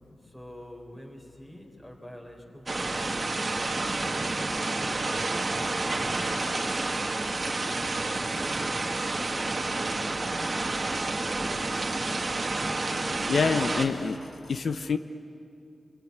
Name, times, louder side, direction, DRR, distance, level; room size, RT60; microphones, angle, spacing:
voice 1, 0.2-3.0 3.7-5.4 5.8-6.6 7.4-8.2 8.9-9.3, equal, 15° left, 1 dB, 3.8 m, -47 dB
sound 1, 2.7-13.9, right 2 dB, 35° right, 2.1 m, -29 dB
voice 2, 13.3-14.2 14.5-15.0, left 5 dB, 70° left, 9 dB, 0.8 m, -26 dB
26.0 x 23.5 x 9.6 m, 2.6 s
wide cardioid pair, 145°, 0 cm